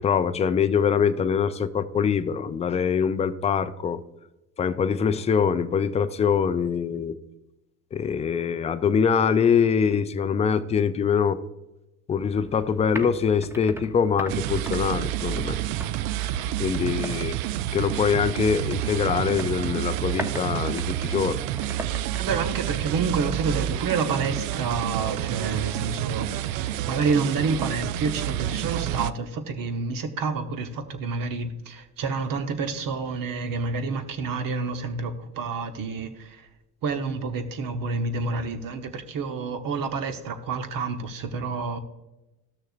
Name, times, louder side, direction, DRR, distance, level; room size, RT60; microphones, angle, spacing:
voice 1, 0.0-4.0 4.6-7.2 7.9-11.4 12.1-15.6 16.6-17.4 17.7-21.4, left 7 dB, 15° left, 0.3 m, -24 dB
sound 1, 12.2-23.6, right 1 dB, 5° right, 0.8 m, -41 dB
sound 2, 14.3-29.1, right 13 dB, 70° right, 0.5 m, -29 dB
voice 2, 22.2-36.4 36.8-41.8, right 4 dB, 45° right, 1.1 m, -29 dB
13.5 x 6.4 x 2.5 m
hypercardioid pair, 70°, 46 cm